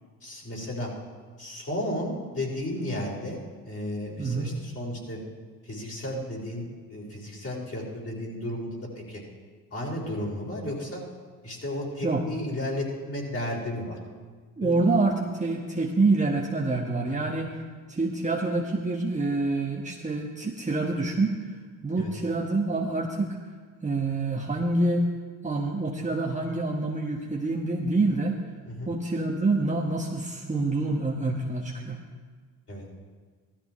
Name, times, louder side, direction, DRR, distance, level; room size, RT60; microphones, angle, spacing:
voice 1, 0.2-0.9 1.4-3.4 3.6-5.2 5.6-6.6 6.9-9.2 9.7-11.0 11.4-14.0 14.6-14.7 22.0-22.1 28.6-29.0 32.7-32.8, left 1 dB, 35° left, -3 dB, 4.7 m, -33 dB
voice 2, 4.2-4.5 12.0-12.2 14.6-17.6 17.9-21.4 21.8-23.4 23.8-25.1 25.4-28.4 28.8-32.0, right 2 dB, 15° right, -1 dB, 1.3 m, -26 dB
16.0 x 13.0 x 3.1 m, 1.5 s
supercardioid pair, 80°, 41 cm